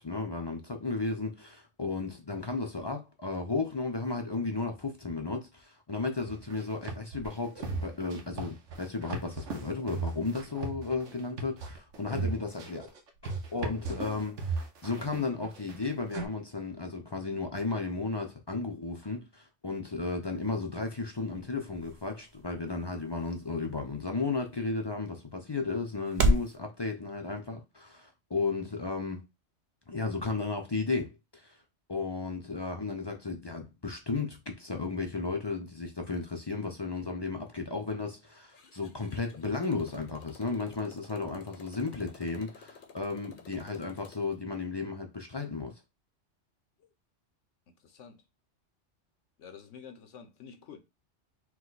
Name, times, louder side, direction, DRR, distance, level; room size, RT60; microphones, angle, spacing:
voice 1, 0.0-12.9 13.2-29.2 29.9-31.6 31.9-45.7, left 3 dB, 30° left, 0.4 m, -34 dB
sound 1, 6.3-16.2, right 4 dB, 90° right, 1.2 m, -37 dB
sound 2, 20.3-26.6, right 1 dB, 50° right, 0.7 m, -34 dB
Motorcycle, 38.5-44.4, left 5 dB, 50° left, 0.9 m, -53 dB
voice 2, 47.8-48.2 49.4-50.8, left 7 dB, 80° left, 1.1 m, -49 dB
4.8 x 2.3 x 3.9 m
omnidirectional pair, 1.2 m